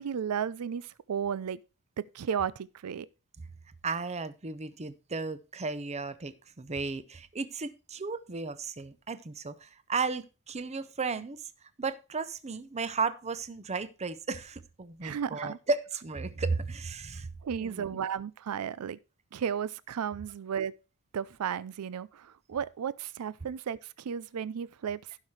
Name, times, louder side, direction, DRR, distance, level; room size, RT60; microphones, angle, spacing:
voice 1, 0.0-1.6 2.0-3.1 15.0-15.6 17.4-19.0 19.3-20.7 21.1-25.2, right 7 dB, 75° right, 0.4 m, -34 dB
voice 2, 3.8-11.4 11.8-17.9, right 4 dB, 30° right, 0.7 m, -34 dB
16.0 x 5.7 x 3.2 m
head